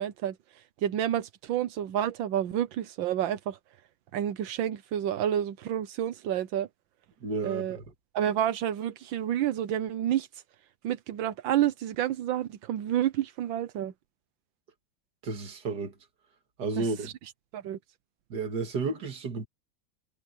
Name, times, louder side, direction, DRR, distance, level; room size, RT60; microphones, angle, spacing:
voice 1, 0.0-3.6 4.1-6.7 7.4-7.8 8.1-10.4 10.8-13.9 16.8-17.8, right 11 dB, 85° right, 1.6 m, -30 dB
voice 2, 7.2-7.8 15.2-15.9 16.6-17.1 18.3-19.5, right 3 dB, 60° right, 2.5 m, -32 dB
omnidirectional pair, 2.1 m